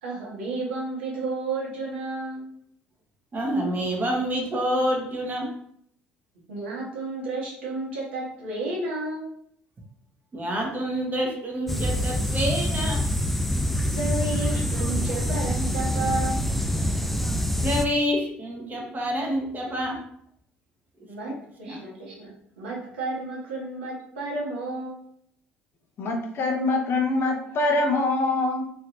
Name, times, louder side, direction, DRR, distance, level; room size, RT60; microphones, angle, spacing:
voice 1, 0.0-2.5 6.5-9.3 13.9-16.5 21.1-21.3 21.6-25.0, right 2 dB, 80° right, -4 dB, 1.1 m, -32 dB
voice 2, 3.3-5.5 10.3-13.0 17.6-20.0 21.3-21.4 21.7-21.8, equal, 30° right, 0 dB, 0.9 m, -27 dB
sound 1, 11.7-17.9, equal, 5° left, 0.3 m, -25 dB
voice 3, 26.0-28.6, left 2 dB, 45° left, 3 dB, 0.7 m, -24 dB
3.2 x 2.8 x 2.5 m, 0.69 s
hypercardioid pair, 60°, 6 cm